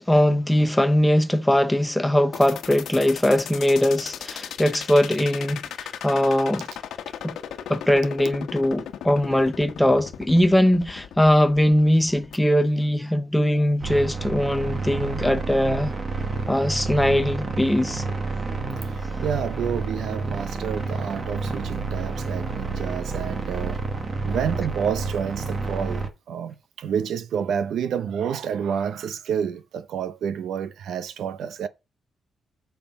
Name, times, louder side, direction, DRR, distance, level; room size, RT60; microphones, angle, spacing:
voice 1, 0.0-6.7 7.2-7.4 7.7-15.9 16.5-18.0, left 1 dB, 5° left, 0.7 m, -21 dB
sound 1, 2.3-12.4, left 9 dB, 90° left, 1.2 m, -36 dB
sound 2, 13.8-26.1, right 3 dB, 25° right, 1.4 m, -29 dB
voice 2, 18.8-23.8 24.2-31.7, right 8 dB, 70° right, 0.7 m, -29 dB
8.7 x 5.9 x 5.3 m
wide cardioid pair, 180°, 0 cm